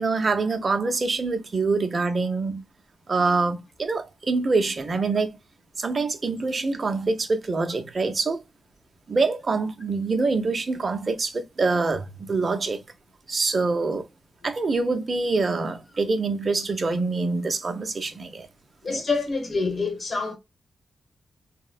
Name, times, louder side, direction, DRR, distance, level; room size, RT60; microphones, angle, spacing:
voice 1, 0.0-2.6 3.1-5.4 5.8-8.4 9.1-12.8 13.3-14.0 14.4-18.5 18.9-19.0, right 3 dB, 40° right, 0.6 m, -25 dB
voice 2, 18.8-20.3, left 4 dB, 40° left, 1.0 m, -26 dB
3.5 x 2.0 x 2.2 m
cardioid pair, 100°, 0 cm